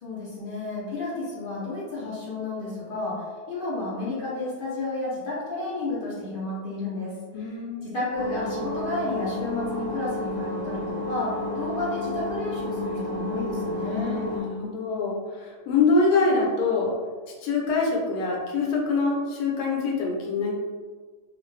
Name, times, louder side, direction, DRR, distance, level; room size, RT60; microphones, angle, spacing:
voice 1, 0.0-3.2 3.5-7.6 7.8-14.2, left 2 dB, 50° left, -8 dB, 0.7 m, -31 dB
voice 2, 7.3-7.9 13.9-17.0 17.4-20.5, left 3 dB, 75° left, -2 dB, 1.2 m, -25 dB
sound 1, 8.1-14.4, left 1 dB, 40° right, 0.7 m, -31 dB
2.5 x 2.4 x 3.1 m, 1.5 s
omnidirectional pair, 1.7 m